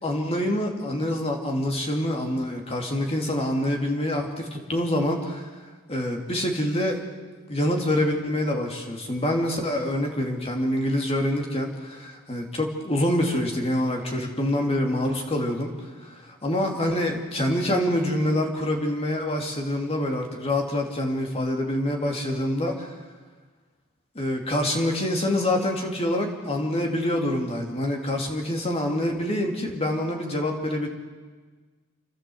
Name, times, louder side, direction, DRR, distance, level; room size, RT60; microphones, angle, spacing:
voice 1, 0.0-5.5 5.9-7.0 7.5-15.7 16.0-22.9 24.1-30.9, left 1 dB, 30° left, 2 dB, 2.9 m, -26 dB
29.0 x 12.5 x 8.0 m, 1.4 s
head